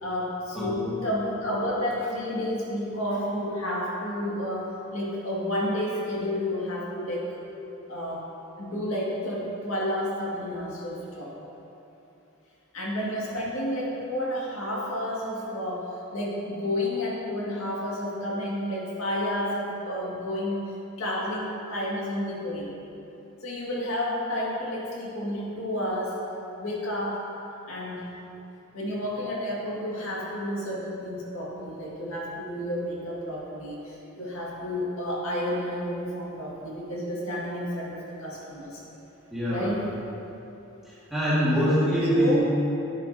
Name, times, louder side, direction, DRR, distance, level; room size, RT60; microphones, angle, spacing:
voice 1, 0.0-7.3 7.9-8.2 8.6-11.4 12.7-20.7 21.0-22.7 23.4-26.2 26.6-27.2 27.7-28.1 28.7-38.8 39.5-39.8 42.1-42.4, left 1 dB, 70° left, -5 dB, 2.1 m, -31 dB
voice 2, 0.5-0.9 39.3-39.7 40.8-42.4, equal, ahead, -12 dB, 2.2 m, -24 dB
12.0 x 10.5 x 2.8 m, 2.9 s
head